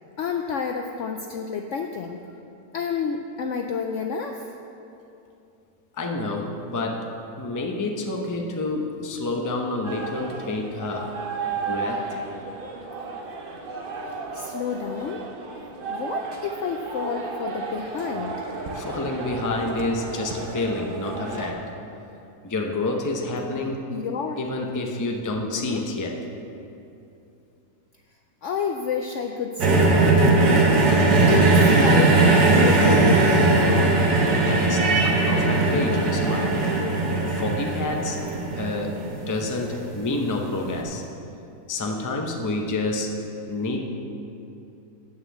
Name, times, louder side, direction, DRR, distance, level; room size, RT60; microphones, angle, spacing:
voice 1, 0.2-2.2 2.7-4.5 14.1-15.2 15.9-18.5 23.9-24.4 25.5-25.8 28.4-30.7 31.3-34.1, left 6 dB, 70° left, 4 dB, 0.7 m, -30 dB
voice 2, 5.9-7.1 7.3-11.1 11.5-12.0 18.7-21.7 22.4-23.8 24.4-26.2 34.5-36.7 37.3-38.2 38.5-41.0 41.7-43.1 43.5-43.8, left 2 dB, 20° left, 1 dB, 0.5 m, -28 dB
sound 1, 9.8-21.5, right 4 dB, 45° right, 0.8 m, -34 dB
sound 2, 29.6-39.8 40.7-40.8, right 3 dB, 75° right, 1.9 m, -19 dB
9.4 x 6.3 x 7.1 m, 2.8 s
omnidirectional pair, 1.7 m